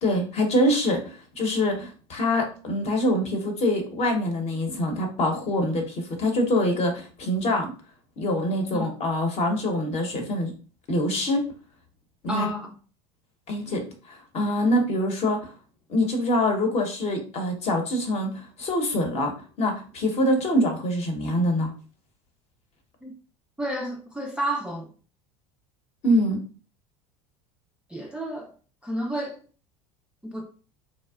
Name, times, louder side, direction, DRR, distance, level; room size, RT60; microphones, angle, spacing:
voice 1, 0.0-7.7 8.2-10.5 10.9-11.5 12.2-12.5 13.5-15.5 15.9-19.3 19.6-21.7 26.0-26.4, left 1 dB, 40° left, 0.8 m, -25 dB
voice 2, 12.3-12.7 23.0-23.2 23.6-24.9 27.9-28.5 28.8-29.4 30.2-30.4, right 1 dB, 5° right, 0.3 m, -30 dB
2.6 x 2.0 x 2.3 m
hypercardioid pair, 85°, 16 cm